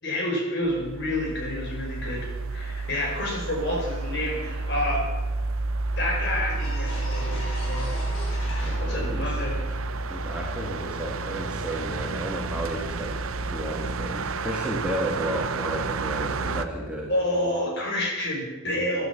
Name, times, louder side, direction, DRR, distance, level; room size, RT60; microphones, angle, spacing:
voice 1, 0.0-5.0 6.0-8.0 8.5-9.6 17.1-19.1, left 1 dB, 55° left, -2 dB, 5.1 m, -29 dB
sound 1, 0.6-16.7, right 3 dB, 80° right, 0.8 m, -30 dB
sound 2, 6.1-6.2 6.5-9.2 9.5-12.5, left 1 dB, 75° left, 5.4 m, -40 dB
voice 2, 8.6-9.4 10.1-13.2 13.5-17.1, right 1 dB, 5° right, -2 dB, 2.1 m, -32 dB
13.5 x 11.0 x 7.1 m, 1.2 s
head